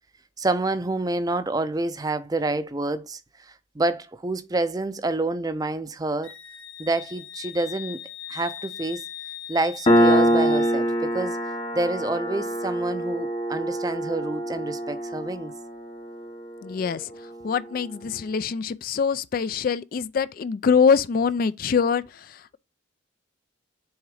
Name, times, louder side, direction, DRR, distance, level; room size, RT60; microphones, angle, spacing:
voice 1, 0.4-3.2 3.5-6.3 6.8-8.0 8.3-9.0 9.5-11.4 11.7-15.5, right 2 dB, 20° right, 0.5 m, -28 dB
Wind instrument woodwind instrument, 6.2-10.8, left 11 dB, 85° left, 0.9 m, -40 dB
Piano, 9.9-17.0, equal, 30° left, 0.8 m, -24 dB
voice 2, 16.6-17.1 17.4-22.6, left 6 dB, 45° left, 0.3 m, -24 dB
7.0 x 3.8 x 4.8 m
head